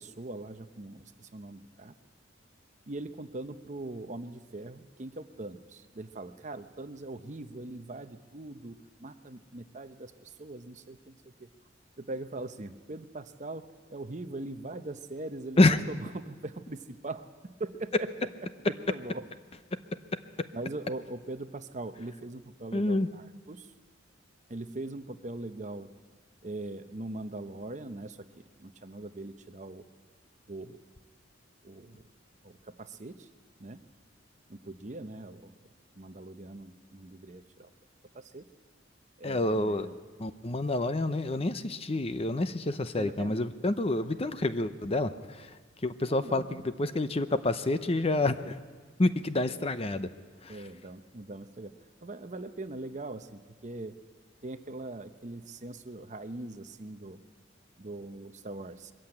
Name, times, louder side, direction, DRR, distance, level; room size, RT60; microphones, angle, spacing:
voice 1, 0.0-2.0 2.9-11.5 12.0-17.3 17.6-18.1 18.6-19.2 20.5-23.7 24.5-25.9 26.4-28.2 28.6-29.8 30.5-30.8 31.6-32.0 32.4-33.3 33.6-33.8 34.5-35.5 36.0-37.7 38.1-38.5 39.2-39.9 43.0-43.4 46.1-46.6 50.5-51.7 52.0-53.9 54.4-57.2 57.8-58.9, right 2 dB, 40° right, 10 dB, 0.8 m, -41 dB
voice 2, 22.7-23.1 39.2-39.9 40.2-45.6 45.8-48.6 49.0-50.1 50.4-50.6, left 2 dB, 30° left, 11 dB, 0.7 m, -28 dB
22.5 x 14.0 x 8.8 m, 1.4 s
head